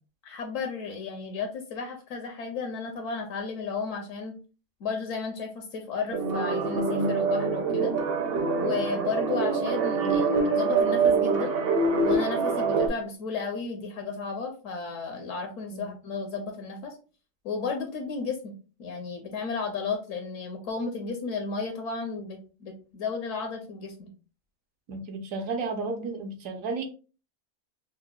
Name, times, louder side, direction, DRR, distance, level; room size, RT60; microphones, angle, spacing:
voice 1, 0.2-4.4 4.8-7.9 8.6-11.5 12.0-17.0 17.4-18.5 18.8-24.1, left 5 dB, 70° left, 3 dB, 1.0 m, -33 dB
sound 1, 6.1-12.9, right 4 dB, 55° right, 0.8 m, -25 dB
voice 2, 24.9-26.9, right 3 dB, 75° right, 5 dB, 1.1 m, -33 dB
5.5 x 2.0 x 2.3 m, 0.35 s
omnidirectional pair, 1.5 m